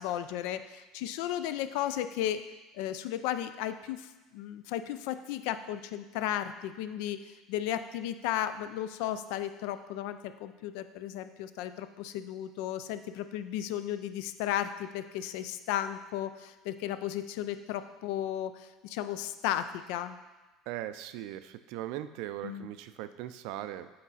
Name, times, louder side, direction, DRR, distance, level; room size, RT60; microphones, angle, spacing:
voice 1, 0.0-2.4 2.7-20.2 22.4-22.7, left 11 dB, 70° left, 11 dB, 0.4 m, -34 dB
voice 2, 20.7-23.9, right 13 dB, 65° right, 12 dB, 0.3 m, -39 dB
8.5 x 3.9 x 4.1 m, 1.2 s
cardioid pair, 170°, 0 cm